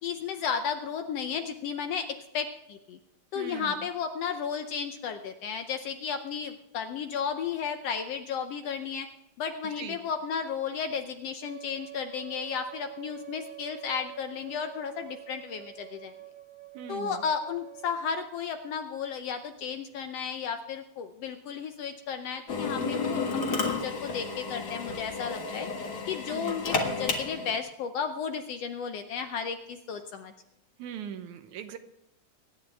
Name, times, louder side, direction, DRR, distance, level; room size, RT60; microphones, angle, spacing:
voice 1, 0.0-3.0 3.3-9.1 9.4-16.1 16.9-25.7 26.1-30.3, left 6 dB, 70° left, 7 dB, 1.6 m, -34 dB
voice 2, 3.4-3.8 9.6-10.0 16.7-17.2 26.3-26.6 30.8-31.8, right 9 dB, 80° right, 9 dB, 2.3 m, -40 dB
Wind instrument woodwind instrument, 11.4-18.0, right 14 dB, 50° right, 2.1 m, -46 dB
Drill, 22.5-27.6, left 4 dB, 40° left, 1.8 m, -32 dB
23.5 x 10.0 x 3.4 m, 0.88 s
omnidirectional pair, 3.5 m